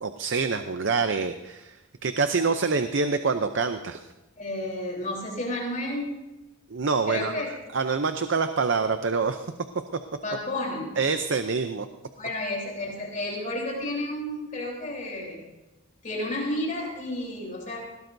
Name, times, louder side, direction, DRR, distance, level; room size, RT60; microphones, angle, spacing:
voice 1, 0.0-1.8 2.0-4.0 6.7-7.3 7.7-9.5 11.0-11.9, right 4 dB, 60° right, 8 dB, 0.6 m, -26 dB
voice 2, 4.4-6.1 7.1-7.5 10.2-10.9 12.2-15.4 16.0-17.8, left 1 dB, 35° left, -2 dB, 3.7 m, -31 dB
20.0 x 17.5 x 2.7 m, 1.1 s
head